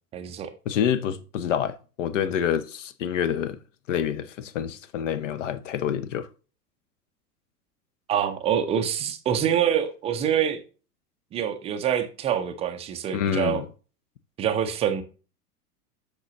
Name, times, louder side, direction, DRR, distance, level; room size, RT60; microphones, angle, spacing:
voice 1, 0.1-0.5 8.1-10.6 11.3-13.6 14.4-15.0, right 9 dB, 15° right, 0.5 m, -25 dB
voice 2, 0.7-3.6 3.9-6.3 13.1-13.7, left 9 dB, 50° left, 0.7 m, -27 dB
8.0 x 5.9 x 3.0 m
figure-of-eight pair, 95°, 47 cm